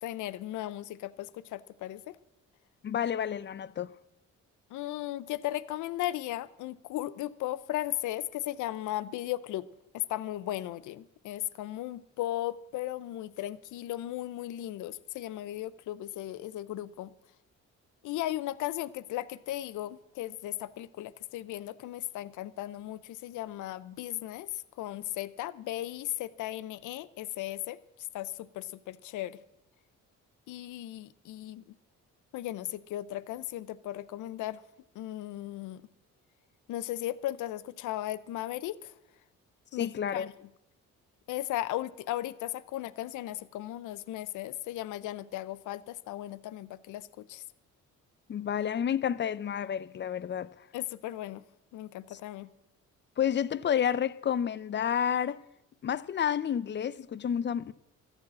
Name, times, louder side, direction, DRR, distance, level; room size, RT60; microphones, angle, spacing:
voice 1, 0.0-2.2 4.7-9.7 9.9-17.1 18.0-27.8 28.1-29.4 30.5-31.6 32.3-34.6 35.0-35.8 36.7-38.9 39.7-40.3 41.3-47.4 50.7-51.4 51.7-52.5, left 14 dB, 85° left, 0.6 m, -36 dB
voice 2, 2.8-3.9 39.8-40.3 48.3-50.5 53.2-55.4 55.8-57.7, left 8 dB, 40° left, 0.5 m, -30 dB
14.0 x 9.0 x 7.5 m
cardioid pair, 90°, 30 cm